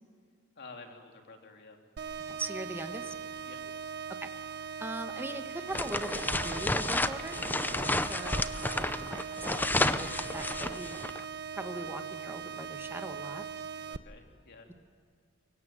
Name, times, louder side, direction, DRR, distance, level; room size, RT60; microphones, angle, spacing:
voice 1, 0.6-1.8 3.4-3.6 8.5-8.7 13.9-14.7, left 3 dB, 50° left, 3 dB, 3.1 m, -50 dB
sound 1, 2.0-14.0, right 7 dB, 50° right, 0.8 m, -40 dB
voice 2, 2.3-3.1 4.2-4.3 4.6-7.4 8.1-8.5 8.7-10.1 10.3-11.0 11.5-13.4, right 1 dB, 10° right, 6 dB, 1.5 m, -40 dB
sound 2, 5.7-11.2, left 2 dB, 10° left, 0.7 m, -31 dB
24.0 x 23.5 x 9.2 m, 2.2 s
head